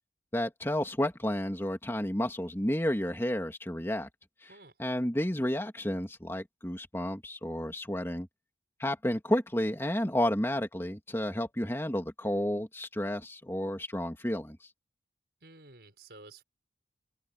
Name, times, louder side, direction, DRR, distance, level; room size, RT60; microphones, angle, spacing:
voice 1, 0.3-4.1 4.4-4.5 4.8-8.3 8.8-14.6, left 1 dB, 15° left, 2.5 m, -31 dB
voice 2, 15.4-16.4, right 2 dB, 65° right, 6.2 m, -52 dB
head